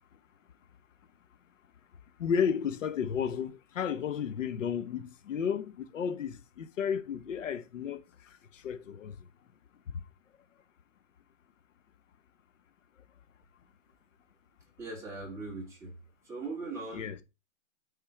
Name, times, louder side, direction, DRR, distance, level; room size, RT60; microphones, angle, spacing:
voice 1, 2.2-9.2 9.9-10.0 16.9-17.2, left 7 dB, 80° left, 1.0 m, -33 dB
voice 2, 14.8-15.9 16.2-17.2, right 3 dB, 5° right, 2.0 m, -40 dB
8.8 x 3.8 x 4.5 m
hypercardioid pair, 160°, 38 cm